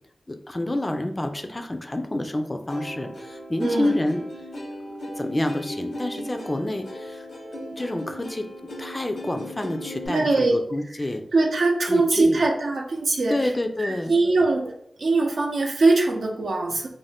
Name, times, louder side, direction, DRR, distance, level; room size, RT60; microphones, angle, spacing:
voice 1, 0.3-4.2 4.8-8.5 8.8-11.2 11.9-12.4 13.3-14.1, left 1 dB, 25° left, 6 dB, 0.3 m, -28 dB
Plucked string instrument, 2.7-10.1, equal, 85° left, 0.8 m, -37 dB
voice 2, 3.6-3.9 10.1-10.6 11.3-13.4 13.8-14.7 15.0-16.9, right 3 dB, 75° right, 1 dB, 0.5 m, -21 dB
2.5 x 2.1 x 3.4 m, 0.69 s
cardioid pair, 55°, 0 cm